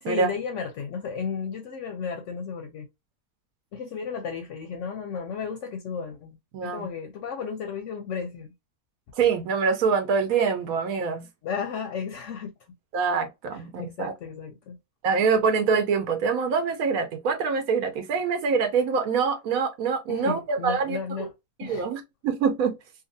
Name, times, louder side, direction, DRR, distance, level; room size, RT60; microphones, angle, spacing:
voice 1, 0.0-2.9 3.7-8.5 11.4-12.5 13.5-14.8 20.1-21.3 21.6-21.9, left 6 dB, 65° left, 0.8 m, -34 dB
voice 2, 6.5-6.9 9.2-11.3 12.9-14.1 15.0-21.3 21.6-22.7, right 5 dB, 80° right, 1.1 m, -25 dB
2.8 x 2.4 x 2.6 m
omnidirectional pair, 1.5 m